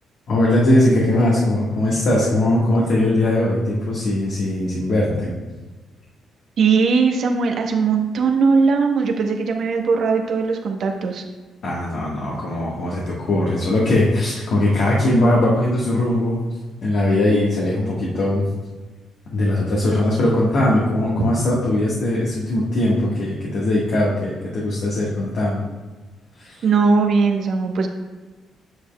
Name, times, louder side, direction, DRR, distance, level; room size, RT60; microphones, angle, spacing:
voice 1, 0.3-5.3 11.6-16.4 16.8-18.4 19.3-25.6 26.4-26.6, left 1 dB, 65° left, -5 dB, 1.5 m, -20 dB
voice 2, 6.6-11.2 26.6-27.9, right 4 dB, 65° right, 3 dB, 1.0 m, -19 dB
8.5 x 6.8 x 2.3 m, 1.3 s
cardioid pair, 90°, 0 cm